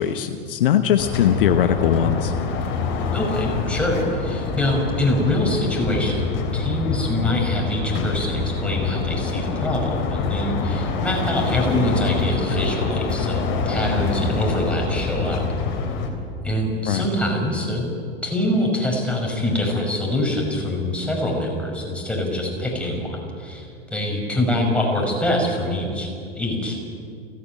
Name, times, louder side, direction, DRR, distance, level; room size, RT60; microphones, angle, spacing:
voice 1, 0.0-2.3 16.9-17.1, left 10 dB, 60° left, 9 dB, 1.0 m, -20 dB
sound 1, 1.0-16.1, left 4 dB, 40° left, 3.5 m, -25 dB
voice 2, 3.1-15.4 16.4-17.8 18.2-26.1 26.4-26.8, left 1 dB, 5° left, -1 dB, 5.4 m, -24 dB
29.5 x 10.0 x 9.0 m, 2.3 s
figure-of-eight pair, 85°, 31 cm